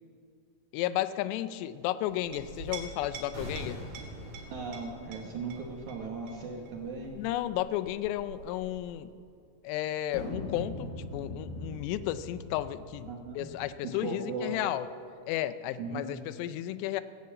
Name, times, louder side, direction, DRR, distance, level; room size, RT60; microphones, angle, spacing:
voice 1, 0.7-3.8 7.2-9.1 9.6-14.9 15.3-17.0, left 13 dB, 80° left, 12 dB, 2.6 m, -33 dB
Chink clink, 2.1-9.2, right 4 dB, 90° right, 4.3 m, -47 dB
sound 1, 3.3-8.4 8.6-8.8, equal, 35° right, 3.6 m, -46 dB
voice 2, 4.5-7.1 13.1-13.5 14.0-14.6 15.8-16.1, right 4 dB, 70° right, -1 dB, 1.8 m, -37 dB
sound 2, 10.1-13.7, left 1 dB, 65° left, 4.2 m, -40 dB
15.5 x 6.8 x 8.6 m, 2.3 s
omnidirectional pair, 5.1 m